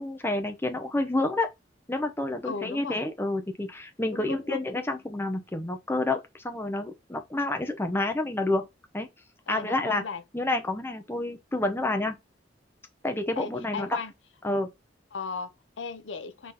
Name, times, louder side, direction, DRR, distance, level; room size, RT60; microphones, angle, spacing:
voice 1, 0.0-1.5 1.9-8.7 8.9-9.1 9.5-10.0 10.3-12.1 13.0-14.0 14.4-14.7, left 2 dB, 15° left, 0.7 m, -29 dB
voice 2, 2.4-3.0 4.1-4.6 9.5-10.2 13.3-14.1 15.1-16.5, left 5 dB, 85° left, 0.7 m, -36 dB
3.8 x 3.1 x 4.0 m
head